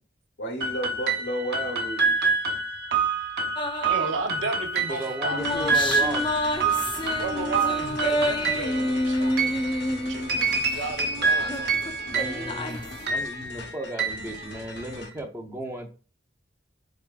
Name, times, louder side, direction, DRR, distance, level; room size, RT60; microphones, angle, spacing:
voice 1, 0.4-2.2, right 1 dB, 85° left, 1.0 m, -32 dB
sound 1, 0.6-15.1, right 4 dB, 60° right, 0.9 m, -28 dB
sound 2, 3.6-4.4 5.0-10.9 11.2-13.1, left 1 dB, 25° left, 0.4 m, -29 dB
voice 2, 3.8-6.2 7.1-9.4 10.1-11.7, right 3 dB, 85° right, 0.7 m, -34 dB
voice 3, 4.9-6.2 12.1-15.9, right 1 dB, 15° right, 0.6 m, -35 dB
sound 3, 5.4-15.2, left 3 dB, 60° left, 0.7 m, -41 dB
4.2 x 3.5 x 2.4 m
head